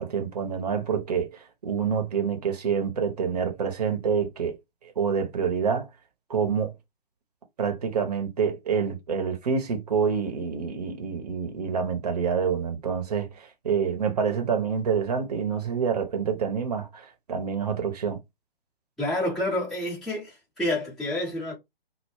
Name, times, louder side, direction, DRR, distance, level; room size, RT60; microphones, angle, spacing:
voice 1, 0.0-4.6 4.8-5.9 6.3-6.7 7.6-18.2, right 6 dB, 40° right, 0.8 m, -27 dB
voice 2, 19.0-21.6, left 1 dB, ahead, 0.6 m, -28 dB
2.1 x 2.0 x 3.2 m
figure-of-eight pair, 135°, 30 cm